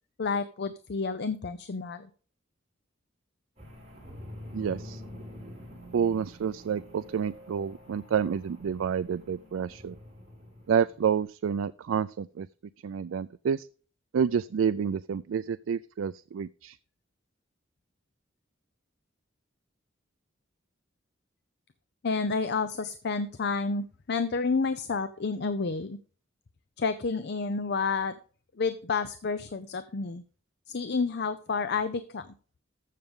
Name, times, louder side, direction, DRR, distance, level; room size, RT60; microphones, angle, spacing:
voice 1, 0.2-2.1 22.0-26.0 26.8-28.1 28.6-30.2 30.7-32.3, left 4 dB, 60° left, 12 dB, 0.6 m, -30 dB
sound 1, 3.6-11.2, equal, 35° right, 6.3 m, -47 dB
voice 2, 4.5-5.0 5.9-10.0 10.7-12.5 12.8-13.7 14.1-16.8, right 7 dB, 85° right, 14 dB, 0.4 m, -29 dB
14.0 x 6.7 x 3.7 m, 0.40 s
head